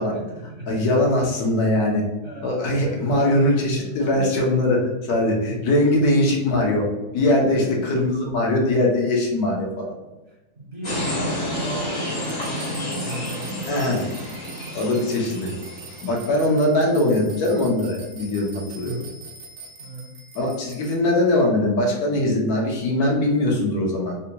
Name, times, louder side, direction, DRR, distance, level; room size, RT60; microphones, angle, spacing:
voice 1, 0.0-0.9 2.2-2.6 2.8-4.6 7.6-7.8 10.3-14.4 15.2-15.3 16.3-16.9 18.7-19.1 19.8-20.1, right 1 dB, 45° right, -5 dB, 1.6 m, -37 dB
voice 2, 0.7-2.0 2.4-6.8 7.1-9.9 13.6-14.0 14.7-15.5 16.0-19.0 20.3-24.1, left 1 dB, 85° left, -1 dB, 1.4 m, -21 dB
sound 1, 10.8-16.4, left 1 dB, 45° left, 1.2 m, -30 dB
sound 2, 12.2-21.0, right 3 dB, 75° right, 1.1 m, -43 dB
3.9 x 2.8 x 2.2 m, 1.1 s
omnidirectional pair, 1.6 m